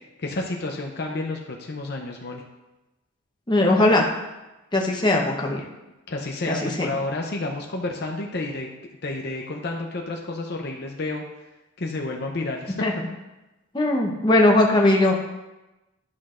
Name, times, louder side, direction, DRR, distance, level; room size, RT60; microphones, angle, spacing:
voice 1, 0.2-2.4 6.1-8.7 9.0-11.2 11.8-12.8, left 2 dB, 50° left, 1 dB, 0.6 m, -30 dB
voice 2, 3.5-4.1 4.7-5.6 6.5-6.9 12.8-12.9 13.7-15.1, left 1 dB, 20° left, 0 dB, 0.9 m, -19 dB
11.5 x 6.0 x 2.5 m, 1.0 s
head